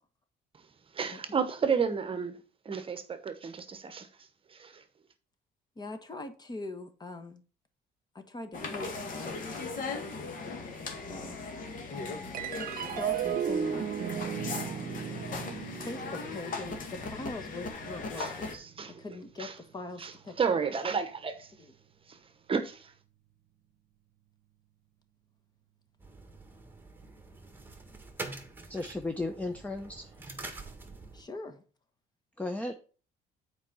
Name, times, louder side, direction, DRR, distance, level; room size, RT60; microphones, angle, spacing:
voice 1, 0.9-4.8 18.2-19.0 19.4-19.6 20.0-21.5 22.1-22.9, right 6 dB, 30° right, 1.0 m, -33 dB
voice 2, 5.8-7.4 8.1-9.4 11.0-11.5 11.9-12.4 12.9-13.9 15.8-18.6 18.9-20.6 21.6-21.7 31.1-31.6, left 2 dB, 25° left, 1.2 m, -42 dB
sound 1, 8.5-18.5, left 4 dB, 55° left, 1.8 m, -39 dB
sound 2, 12.3-19.0, right 8 dB, 55° right, 0.8 m, -36 dB
sound 3, 26.0-31.2, right 3 dB, 10° right, 1.6 m, -45 dB
voice 3, 28.7-30.1 32.4-32.7, left 2 dB, 10° left, 0.7 m, -35 dB
7.3 x 4.8 x 5.5 m
cardioid pair, 110°, 17 cm